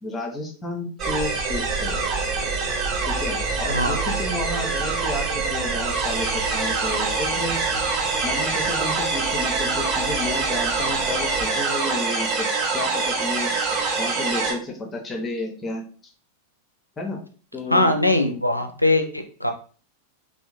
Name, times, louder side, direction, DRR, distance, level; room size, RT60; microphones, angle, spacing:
voice 1, 0.0-2.0 3.0-7.6 8.2-15.8 17.0-17.2 17.5-17.9 18.6-18.7, left 2 dB, 20° left, 3 dB, 0.7 m, -32 dB
sound 1, 1.0-14.5, right 4 dB, 30° right, 0.6 m, -25 dB
sound 2, 1.4-11.5, right 3 dB, 70° right, 0.7 m, -35 dB
voice 2, 17.7-19.5, left 2 dB, 90° left, 5 dB, 0.4 m, -21 dB
3.5 x 2.1 x 2.9 m, 0.41 s
figure-of-eight pair, 90°, 0 cm